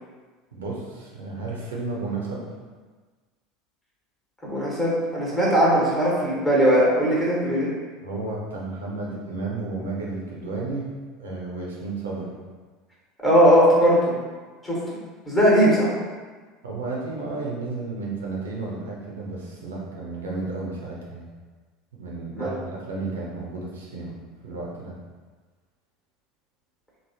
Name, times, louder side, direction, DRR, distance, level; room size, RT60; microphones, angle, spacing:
voice 1, 0.6-2.5 8.0-10.9 11.2-12.4 16.6-21.3 22.0-24.2 24.4-24.9, right 3 dB, 70° right, -4 dB, 0.5 m, -32 dB
voice 2, 4.4-7.7 13.2-14.1 14.6-15.0 15.2-15.9 22.3-22.5, equal, 15° left, -6 dB, 1.2 m, -19 dB
3.3 x 2.0 x 2.8 m, 1.4 s
figure-of-eight pair, 70°, 0 cm